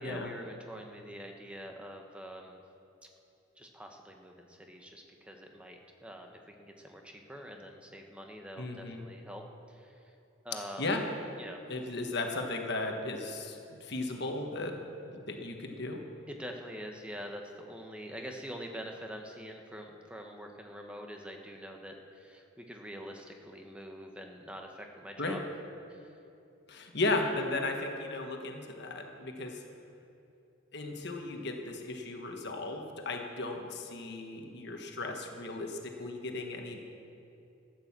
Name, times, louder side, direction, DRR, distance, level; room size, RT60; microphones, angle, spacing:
voice 1, 0.0-2.6 3.6-9.4 9.7-10.1 10.4-11.0 11.4-11.6 16.3-25.4 25.9-26.2, equal, 5° right, 2 dB, 1.1 m, -45 dB
voice 2, 8.6-9.0 10.8-11.0 11.7-16.0 25.2-25.4 26.7-29.6 30.7-36.8, left 2 dB, 55° left, 3 dB, 1.4 m, -35 dB
13.5 x 9.3 x 7.4 m, 2.7 s
head